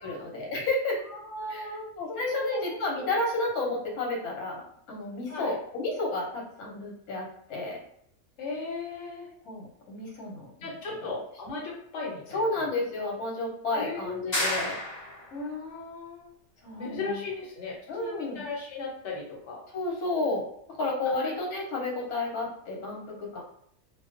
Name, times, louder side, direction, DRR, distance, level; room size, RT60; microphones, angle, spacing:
voice 1, 0.0-1.0 1.5-1.7 2.0-7.8 9.5-11.0 12.3-14.8 16.6-17.2 17.9-18.4 19.7-23.4, left 2 dB, 85° left, -1 dB, 1.2 m, -31 dB
voice 2, 1.1-1.8 2.1-2.8 3.2-3.3 5.3-5.5 8.4-9.3 10.6-12.7 13.7-14.5 15.3-16.3 16.8-19.6, left 3 dB, 55° left, -3 dB, 1.0 m, -37 dB
sound 1, 14.3-15.4, left 1 dB, 40° left, 0.7 m, -30 dB
2.4 x 2.2 x 2.4 m, 0.67 s
omnidirectional pair, 1.5 m